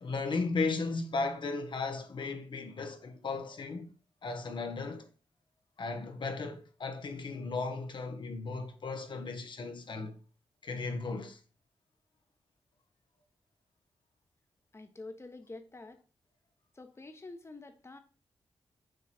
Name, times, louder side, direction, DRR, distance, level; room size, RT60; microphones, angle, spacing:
voice 1, 0.0-3.9 4.2-5.1 5.8-10.2 10.6-11.4, left 3 dB, 60° left, 1.1 m, -35 dB
voice 2, 14.7-16.0 16.7-18.0, left 2 dB, 30° left, 1.1 m, -47 dB
7.8 x 3.1 x 4.2 m
cardioid pair, 60°, 9 cm